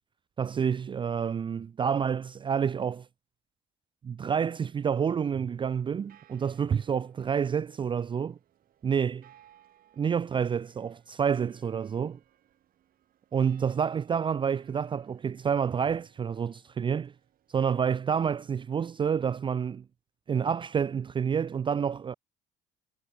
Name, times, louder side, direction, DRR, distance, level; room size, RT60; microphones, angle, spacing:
voice 1, 0.4-3.1 4.0-8.4 8.8-9.2 10.0-12.2 13.3-17.1 17.5-19.8 20.3-22.1, right 7 dB, 30° right, 0.5 m, -28 dB
sound 1, 4.5-18.6, right 11 dB, 60° right, 6.9 m, -64 dB
cardioid pair, 95°, 17 cm